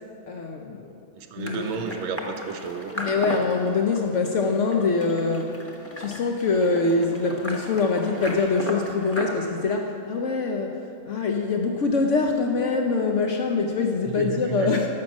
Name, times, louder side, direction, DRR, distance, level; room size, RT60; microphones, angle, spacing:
voice 1, 0.3-0.9 1.4-1.8 3.0-5.6 6.0-14.9, left 4 dB, 80° left, 3 dB, 0.6 m, -24 dB
voice 2, 1.1-2.9 14.2-14.8, right 6 dB, 85° right, 5 dB, 1.5 m, -32 dB
sound 1, 1.4-9.3, left 1 dB, 15° left, 0.6 m, -36 dB
12.5 x 6.2 x 7.3 m, 2.6 s
omnidirectional pair, 2.2 m